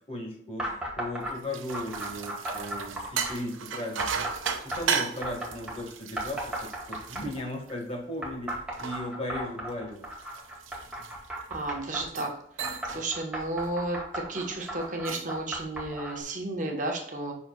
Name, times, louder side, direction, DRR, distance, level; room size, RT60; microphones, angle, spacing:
voice 1, 0.1-4.2 4.6-10.0, left 1 dB, 30° left, 0 dB, 1.5 m, -37 dB
sound 1, 0.6-1.3 1.7-3.4 4.0-5.8 6.2-7.5 8.2-12.0 12.6-16.2, right 1 dB, 5° right, 1.5 m, -35 dB
sound 2, 1.2-8.0 8.5-11.5 12.0-12.3 12.6-13.1 13.4-13.7 14.8-15.4, right 6 dB, 90° right, 0.8 m, -36 dB
voice 2, 11.5-12.3 12.6-17.3, right 2 dB, 40° right, 1 dB, 1.1 m, -33 dB
7.6 x 5.7 x 2.3 m, 0.70 s
head